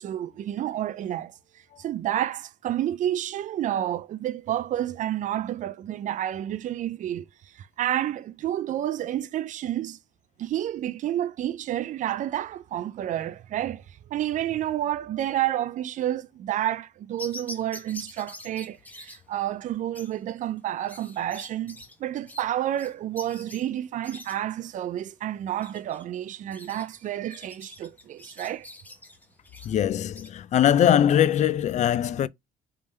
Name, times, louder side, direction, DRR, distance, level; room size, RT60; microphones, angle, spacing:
voice 1, 0.0-1.3 1.8-10.0 10.4-28.7, right 12 dB, 50° right, 0.4 m, -30 dB
sound 1, 17.2-30.3, left 1 dB, 10° left, 0.9 m, -46 dB
voice 2, 29.6-32.3, left 10 dB, 45° left, 0.4 m, -21 dB
3.5 x 3.3 x 4.1 m
cardioid pair, 110°, 17 cm